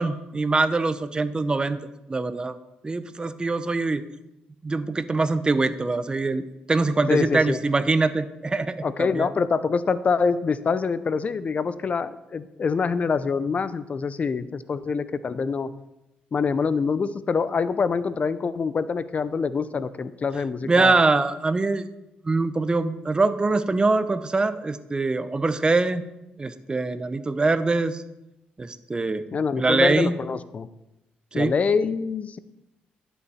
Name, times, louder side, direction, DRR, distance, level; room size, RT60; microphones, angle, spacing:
voice 1, 0.0-1.8 2.1-2.6 2.8-4.0 4.6-9.3 20.6-21.8 22.2-26.0 26.4-28.0 28.6-29.2 29.6-30.1 31.3-31.5, right 3 dB, 25° right, 13 dB, 0.7 m, -23 dB
voice 2, 7.1-7.6 8.8-15.7 16.3-21.0 29.3-30.7 31.3-32.4, left 5 dB, 40° left, 15 dB, 0.6 m, -25 dB
11.0 x 6.9 x 4.3 m, 0.91 s
supercardioid pair, 75°, 4 cm